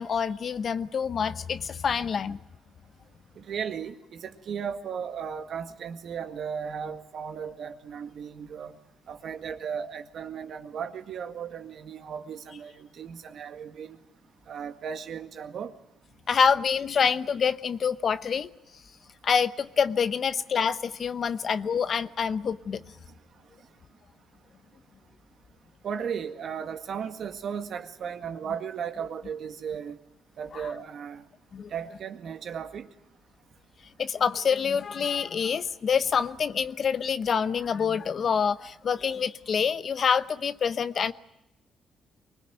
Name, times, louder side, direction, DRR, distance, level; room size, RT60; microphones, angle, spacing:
voice 1, 0.0-2.4 16.3-18.5 19.2-22.8 31.5-31.7 34.0-41.1, left 6 dB, 50° left, 0.9 m, -26 dB
voice 2, 3.4-8.8 9.1-14.0 14.5-15.7 25.8-30.0 30.4-31.3 31.7-32.9, right 7 dB, 65° right, 1.9 m, -36 dB
24.0 x 20.5 x 9.2 m
cardioid pair, 90°, 0 cm